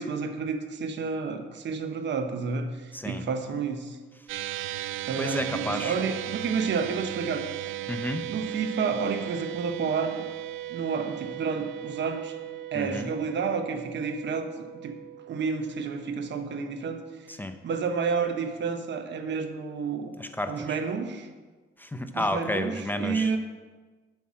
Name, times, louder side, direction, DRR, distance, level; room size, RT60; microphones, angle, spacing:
voice 1, 0.0-4.0 5.1-7.7 8.3-10.2 10.7-12.4 12.7-14.9 15.3-17.0 17.6-20.1 20.5-21.3 22.1-23.4, right 5 dB, 65° right, 6 dB, 1.1 m, -30 dB
sound 1, 4.3-16.8, right 14 dB, 85° right, 0.4 m, -37 dB
voice 2, 5.2-5.9 7.9-8.3 12.7-13.1 17.4-17.5 20.2-20.8 21.8-23.3, left 1 dB, 10° left, 7 dB, 0.6 m, -31 dB
7.3 x 5.8 x 7.6 m, 1.3 s
cardioid pair, 90°, 20 cm